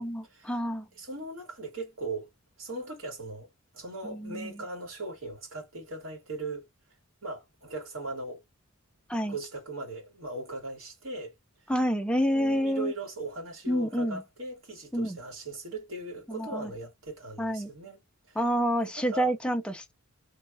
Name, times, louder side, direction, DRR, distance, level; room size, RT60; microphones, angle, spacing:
voice 1, 0.0-0.9 4.0-4.5 9.1-9.4 11.7-12.9 13.7-14.2 14.9-15.2 16.3-16.7 17.4-17.7 18.4-19.9, equal, 5° left, 0.4 m, -28 dB
voice 2, 0.9-2.3 2.6-3.5 3.7-6.7 7.2-8.4 9.2-11.3 12.3-18.0 18.3-18.4 19.0-19.3, right 2 dB, 70° right, 2.0 m, -39 dB
3.1 x 2.3 x 2.6 m
head